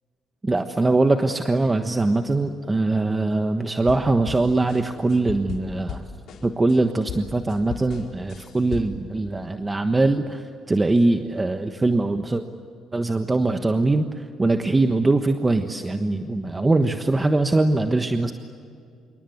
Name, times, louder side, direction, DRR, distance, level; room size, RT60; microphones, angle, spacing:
voice 1, 0.4-6.1 6.4-12.4 12.9-18.3, right 2 dB, 20° right, 7 dB, 1.3 m, -22 dB
sound 1, 3.8-6.8 7.1-9.1, left 7 dB, 65° left, 4.8 m, -36 dB
27.5 x 24.5 x 8.0 m, 2.4 s
cardioid pair, 95°, 0 cm